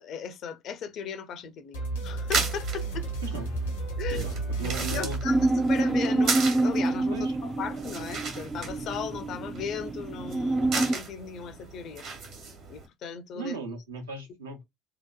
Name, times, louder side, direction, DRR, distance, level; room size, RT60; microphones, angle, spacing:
voice 1, 0.0-3.1 4.0-4.3 4.6-12.0 12.7-13.6, left 7 dB, 55° left, 0.5 m, -37 dB
sound 1, 1.7-6.0, right 3 dB, 80° left, 1.1 m, -33 dB
sound 2, 2.1-12.9, right 4 dB, 55° right, 1.2 m, -36 dB
voice 2, 4.1-5.2 7.1-7.4 13.3-14.6, right 3 dB, 80° right, 0.8 m, -37 dB
sound 3, 5.2-11.0, right 2 dB, 20° right, 0.3 m, -27 dB
2.8 x 2.1 x 2.2 m
figure-of-eight pair, 55°, 0 cm